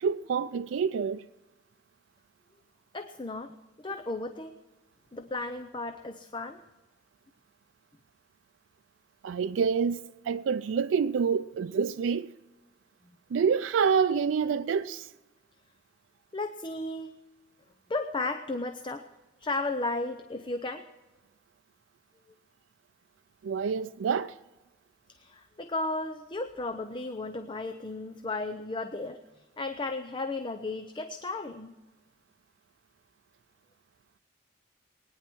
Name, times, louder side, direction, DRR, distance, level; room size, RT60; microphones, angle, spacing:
voice 1, 0.0-1.3 9.2-12.3 13.3-15.1 23.4-24.4, right 6 dB, 85° right, 0.4 m, -27 dB
voice 2, 2.9-4.5 5.1-6.6 16.3-17.1 17.9-19.1 19.4-20.9 25.1-31.7, left 2 dB, 25° left, 0.6 m, -34 dB
20.5 x 9.8 x 4.6 m
head